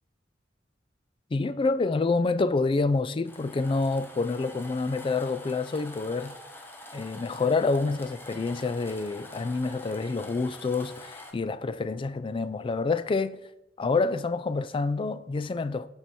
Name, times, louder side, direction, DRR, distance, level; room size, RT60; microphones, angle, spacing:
voice 1, 1.3-6.4 6.9-13.4 13.8-15.9, left 3 dB, 30° left, 0.3 m, -27 dB
sound 1, 3.3-11.3, left 1 dB, 10° left, 0.8 m, -46 dB
7.7 x 5.5 x 4.3 m
head